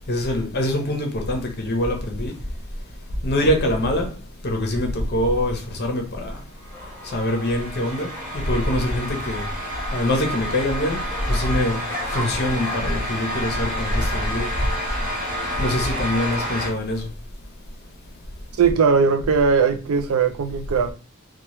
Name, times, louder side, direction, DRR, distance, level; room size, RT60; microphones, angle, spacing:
voice 1, 0.1-2.3 3.2-4.1 4.4-6.4 7.1-9.5 9.9-11.8 12.1-14.5 15.6-17.1, left 1 dB, 50° left, 0.8 m, -24 dB
sound 1, 5.3-14.5, equal, 10° left, 0.8 m, -39 dB
sound 2, 6.6-16.7, equal, 40° right, 1.0 m, -30 dB
voice 2, 18.6-20.9, right 5 dB, 80° right, 0.4 m, -19 dB
3.0 x 2.2 x 3.0 m
head